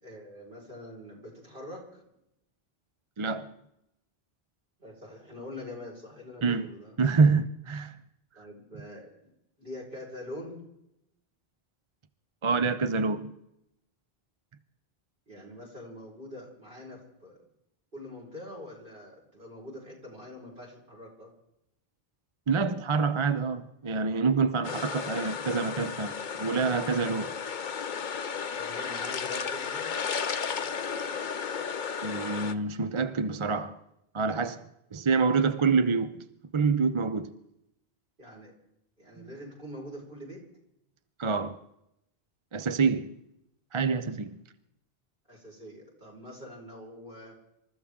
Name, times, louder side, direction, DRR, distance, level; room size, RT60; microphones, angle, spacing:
voice 1, 0.0-2.0 4.8-7.0 8.3-9.3 9.6-10.6 15.3-17.4 17.9-21.3 28.5-29.9 38.2-38.5 39.0-40.4 45.3-47.4, left 1 dB, 55° right, 5.0 m, -44 dB
voice 2, 3.2-3.5 6.4-6.6 7.0-8.0 12.4-13.3 22.5-27.4 32.0-33.8 34.1-36.2 36.5-37.3 39.2-39.3 41.2-41.6 42.5-43.2 43.7-44.4, right 4 dB, 35° right, 0.6 m, -27 dB
sound 1, 24.6-32.5, left 6 dB, 55° left, 0.8 m, -34 dB
27.0 x 14.0 x 3.6 m
omnidirectional pair, 1.0 m